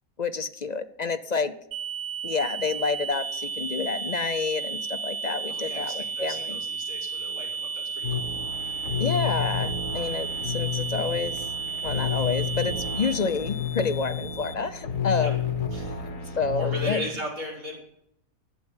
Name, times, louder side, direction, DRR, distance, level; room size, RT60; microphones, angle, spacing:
voice 1, 0.2-1.5 2.2-6.6 9.0-11.4 11.8-15.3 16.4-17.1, left 4 dB, 50° left, 10 dB, 0.5 m, -29 dB
sound 1, 1.7-13.1, right 8 dB, 85° right, 1.5 m, -33 dB
sound 2, 3.1-14.5, left 7 dB, 85° left, 1.2 m, -41 dB
voice 2, 5.5-8.3 15.2-15.3 15.7-17.8, equal, 70° right, -4 dB, 6.2 m, -37 dB
sound 3, 8.0-17.0, left 7 dB, 70° left, 1.7 m, -31 dB
12.0 x 8.5 x 9.6 m, 0.76 s
omnidirectional pair, 1.5 m